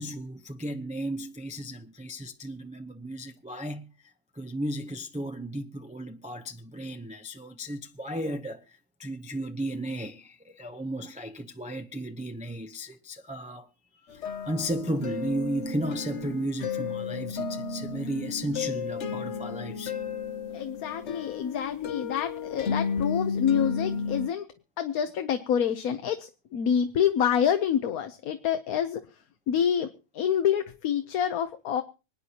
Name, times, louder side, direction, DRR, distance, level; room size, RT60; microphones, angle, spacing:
voice 1, 0.0-3.9 4.3-13.7 14.1-19.9, right 1 dB, 10° right, 0.4 m, -34 dB
sound 1, 14.1-24.3, left 5 dB, 55° left, 1.1 m, -33 dB
voice 2, 20.5-24.4 24.8-29.0 29.5-29.9 30.1-31.8, left 8 dB, 80° left, 1.3 m, -27 dB
25.5 x 9.7 x 2.9 m
omnidirectional pair, 1.5 m